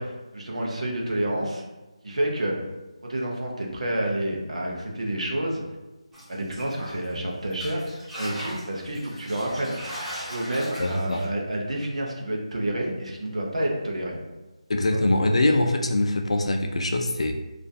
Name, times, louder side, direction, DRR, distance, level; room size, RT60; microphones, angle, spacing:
voice 1, 0.0-1.6 2.0-2.5 3.0-5.6 6.3-9.8 10.3-14.2 14.9-15.0, right 1 dB, 70° right, -1 dB, 0.6 m, -29 dB
sound 1, 6.1-7.2 7.5-11.3, equal, 5° right, 0.4 m, -38 dB
voice 2, 10.8-11.2 14.7-17.3, left 2 dB, 65° left, 4 dB, 0.3 m, -23 dB
2.6 x 2.4 x 2.3 m, 1.1 s
figure-of-eight pair, 170°, 3 cm